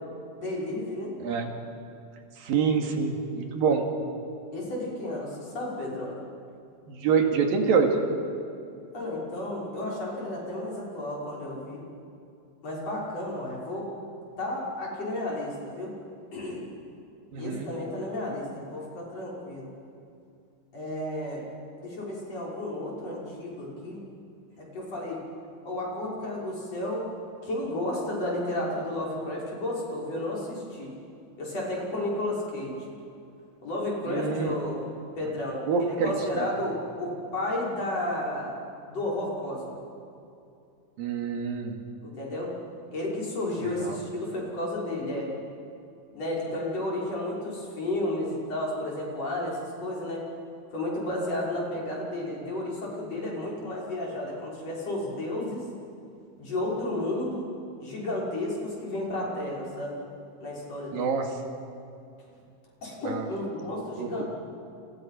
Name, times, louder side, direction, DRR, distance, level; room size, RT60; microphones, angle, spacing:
voice 1, 0.3-1.1 4.5-6.2 8.9-11.8 12.6-13.9 14.4-15.9 16.3-16.7 17.3-19.7 20.7-21.4 21.8-24.0 24.6-25.2 25.6-27.1 27.4-30.9 31.4-32.8 33.6-34.8 35.2-38.6 38.9-39.7 42.0-42.5 42.9-45.3 46.1-50.3 50.7-55.6 56.4-57.5 57.8-60.0 60.4-61.1 62.8-64.2, left 1 dB, 45° left, -4 dB, 6.7 m, -32 dB
voice 2, 2.4-3.9 6.9-8.0 17.3-17.7 34.1-34.5 35.7-36.5 41.0-41.8 43.8-44.0 60.9-61.3 63.1-63.3 64.0-64.2, right 5 dB, 75° right, 3 dB, 3.9 m, -26 dB
30.0 x 29.0 x 5.9 m, 2.5 s
omnidirectional pair, 4.2 m